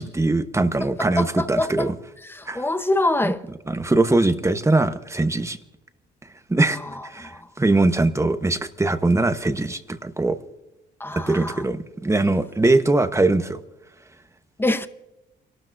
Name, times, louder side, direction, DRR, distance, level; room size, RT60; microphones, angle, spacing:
voice 1, 0.0-1.9 2.5-2.6 3.2-3.3 3.7-5.6 6.5-10.4 11.1-13.6, right 2 dB, 15° right, 1.0 m, -21 dB
voice 2, 0.8-1.9 2.2-3.5 6.6-7.5 11.0-11.6 14.6-14.9, left 1 dB, 10° left, 0.8 m, -26 dB
29.5 x 12.5 x 2.6 m
cardioid pair, 90°, 20 cm